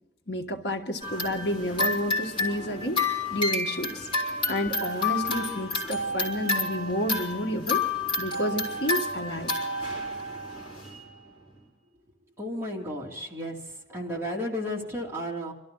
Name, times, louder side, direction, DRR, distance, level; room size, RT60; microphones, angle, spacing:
voice 1, 0.3-3.0 3.3-4.1 4.5-7.8 8.2-9.5, equal, 65° left, 3 dB, 1.5 m, -30 dB
sound 1, 1.0-11.0, left 3 dB, 30° left, 3.8 m, -30 dB
voice 2, 12.4-15.5, equal, 15° right, -3 dB, 2.4 m, -33 dB
26.0 x 13.0 x 3.8 m, 0.90 s
head